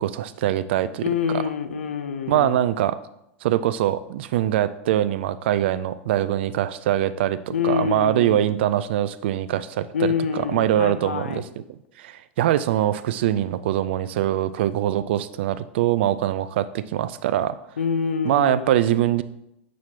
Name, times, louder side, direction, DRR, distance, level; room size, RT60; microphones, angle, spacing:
voice 1, 0.0-1.0 1.3-1.5 2.3-3.0 3.4-11.5 12.0-17.6 18.2-19.2, right 12 dB, 60° right, 14 dB, 0.4 m, -23 dB
voice 2, 1.0-2.6 7.5-8.4 9.9-11.4 17.8-18.7, left 7 dB, 75° left, 9 dB, 0.6 m, -26 dB
7.2 x 6.2 x 2.8 m, 0.81 s
figure-of-eight pair, 90°, 7 cm